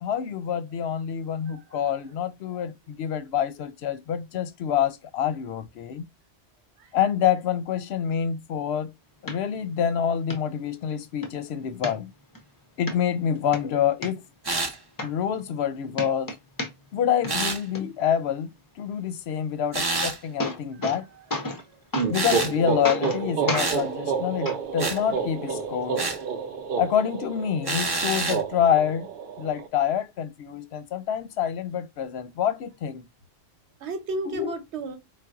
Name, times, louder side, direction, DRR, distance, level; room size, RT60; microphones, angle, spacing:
voice 1, 0.0-6.0 6.9-8.9 9.2-12.1 12.8-14.2 15.0-16.3 16.9-18.5 18.8-21.1 22.1-26.0 26.8-29.1 29.4-33.0 34.3-34.5, left 9 dB, 75° left, 0.8 m, -27 dB
voice 2, 1.4-2.1 6.8-6.9 20.7-21.3 21.7-21.8 33.8-35.0, right 2 dB, 80° right, 1.1 m, -35 dB
sound 1, 9.3-9.4 9.8-9.9 10.3-10.4 10.9-11.3 11.8-12.4 12.9-13.0 13.3-14.1 14.6-14.7 15.0-15.7 15.9-17.0 17.2-17.8 19.8-19.9 20.2-21.0 21.3-21.6 21.9-22.5 22.8-23.2 23.5-23.7 24.4-24.6 25.5-25.6, left 2 dB, 25° left, 0.5 m, -31 dB
sound 2, 14.4-14.8 17.3-17.6 19.7-20.2 22.1-22.5 23.5-23.8 24.8-25.0 26.0-26.2 27.6-28.4, right 3 dB, 30° right, 0.5 m, -27 dB
sound 3, 21.9-29.7, right 6 dB, 60° right, 0.8 m, -30 dB
4.1 x 2.2 x 2.3 m
omnidirectional pair, 1.1 m